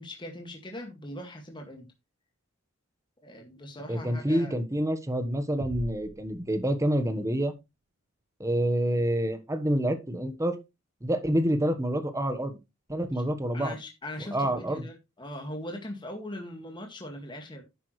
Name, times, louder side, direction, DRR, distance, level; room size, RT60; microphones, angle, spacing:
voice 1, 0.0-1.9 3.2-4.6 13.5-17.6, left 1 dB, 25° left, 1.9 m, -40 dB
voice 2, 3.9-7.5 8.4-10.6 11.0-12.6 12.9-13.7 14.3-14.9, right 1 dB, 15° right, 1.2 m, -27 dB
sound 1, 5.6-7.3, right 2 dB, 65° right, 1.1 m, -43 dB
11.0 x 8.5 x 3.2 m
head